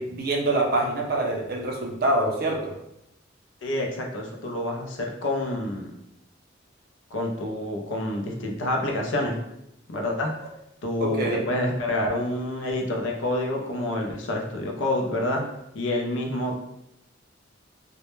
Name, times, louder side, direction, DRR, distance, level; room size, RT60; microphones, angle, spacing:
voice 1, 0.0-2.7 11.0-11.4, right 2 dB, 50° right, 0 dB, 0.4 m, -25 dB
voice 2, 3.6-5.9 7.1-9.4 9.9-10.3 10.8-15.4 15.7-16.6, left 1 dB, 85° left, 1 dB, 0.5 m, -28 dB
2.1 x 2.1 x 3.0 m, 0.82 s
head